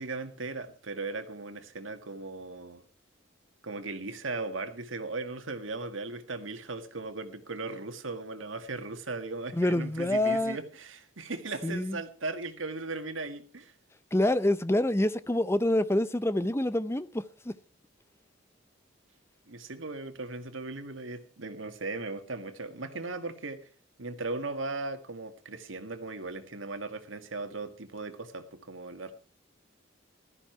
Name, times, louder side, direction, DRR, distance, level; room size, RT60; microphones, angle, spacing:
voice 1, 0.0-2.8 3.6-13.7 19.5-23.6 24.0-29.1, right 3 dB, 85° right, 1.9 m, -37 dB
voice 2, 9.5-10.6 11.6-12.0 14.1-17.5, left 1 dB, 15° left, 0.6 m, -27 dB
15.5 x 13.0 x 4.5 m
head